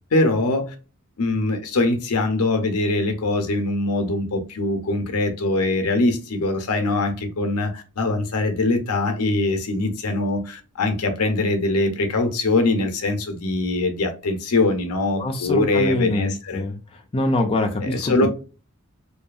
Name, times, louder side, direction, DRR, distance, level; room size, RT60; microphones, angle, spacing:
voice 1, 0.1-0.7 1.2-16.6 17.8-18.3, left 2 dB, 80° left, 0.6 m, -22 dB
voice 2, 15.2-18.3, left 1 dB, 25° left, 0.4 m, -24 dB
2.7 x 2.3 x 2.3 m
head